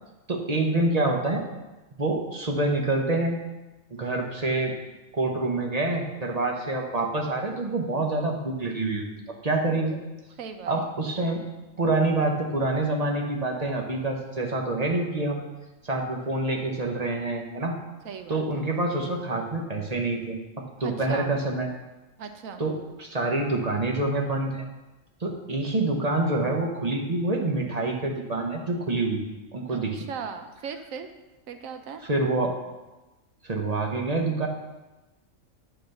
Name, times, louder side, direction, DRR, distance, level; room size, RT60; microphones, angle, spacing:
voice 1, 0.3-1.4 2.0-3.4 3.9-4.7 5.1-9.0 9.4-10.0 10.7-11.4 11.8-15.4 15.8-17.8 18.3-21.7 22.6-24.6 25.2-29.2 29.5-30.0 32.0-32.6 33.4-34.5, right 2 dB, 35° right, 1 dB, 1.0 m, -26 dB
voice 2, 10.4-10.7 18.0-18.6 20.8-21.3 22.2-22.6 29.7-31.1 31.5-32.0, right 6 dB, 85° right, 7 dB, 1.1 m, -38 dB
9.2 x 4.0 x 6.6 m, 1.1 s
omnidirectional pair, 1.4 m